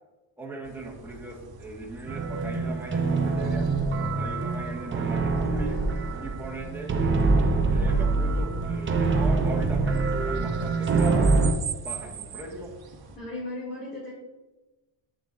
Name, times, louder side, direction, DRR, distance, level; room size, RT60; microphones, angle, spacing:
voice 1, 0.4-5.9 6.2-7.0 7.7-11.4 11.8-12.8, right 2 dB, 5° right, -4 dB, 1.6 m, -38 dB
sound 1, 0.6-13.2, right 6 dB, 50° right, 1.1 m, -43 dB
sound 2, 2.1-11.5, right 3 dB, 25° right, 0.7 m, -25 dB
voice 2, 13.2-14.1, left 2 dB, 20° left, -8 dB, 2.5 m, -35 dB
7.3 x 7.1 x 2.6 m, 1.1 s
cardioid pair, 130°, 46 cm